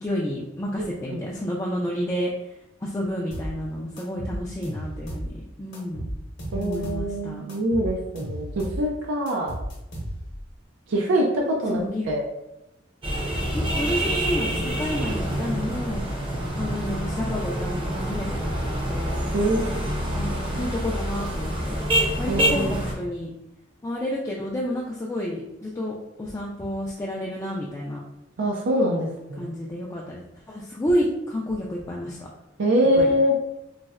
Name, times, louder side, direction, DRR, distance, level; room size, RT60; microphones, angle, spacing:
voice 1, 0.0-2.5 2.8-6.1 6.5-7.5 11.7-12.1 13.5-16.0 16.6-19.2 20.1-21.8 22.2-23.3 23.8-28.0 29.4-32.3 33.0-33.1, equal, 15° left, -4 dB, 0.3 m, -30 dB
sound 1, 3.3-3.6 4.0-5.3 5.7-7.1 7.5-8.9 9.3-10.4, equal, 60° left, 0.9 m, -33 dB
voice 2, 6.5-9.5 10.9-11.8 12.1-12.2 19.3-19.9 22.3-22.8 28.4-29.5 32.6-33.3, equal, 80° right, 0 dB, 0.4 m, -24 dB
sound 2, 13.0-22.9, right 1 dB, 25° right, 0.6 m, -27 dB
4.0 x 2.1 x 2.3 m, 0.89 s
head